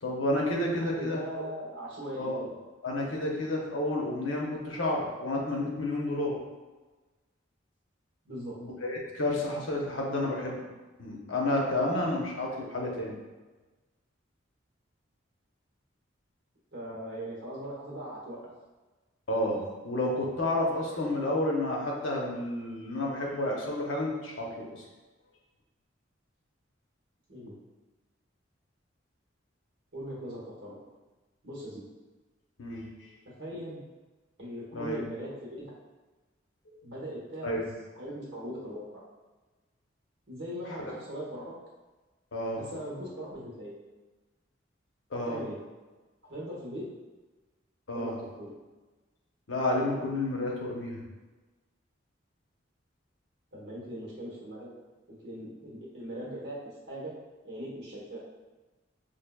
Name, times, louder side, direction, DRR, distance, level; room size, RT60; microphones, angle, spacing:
voice 1, 0.0-1.4 2.2-2.5 2.8-6.4 8.6-10.6 11.0-13.2 19.3-24.8 32.6-32.9 34.7-35.0 36.7-36.8 37.4-37.6 42.3-42.6 45.1-45.4 47.9-48.1 49.5-51.0, left 1 dB, 85° left, -2 dB, 0.8 m, -30 dB
voice 2, 0.9-2.3 8.2-8.6 11.9-12.1 16.7-18.4 27.3-27.6 29.9-30.8 31.4-31.8 33.2-33.8 34.4-35.7 36.8-37.5 38.0-38.9 40.3-41.4 42.5-43.7 45.3-45.6 46.2-46.8 47.9-48.5 53.5-54.7 55.1-57.1 57.4-58.2, equal, 60° right, -5 dB, 1.1 m, -40 dB
4.9 x 2.6 x 2.2 m, 1.2 s
head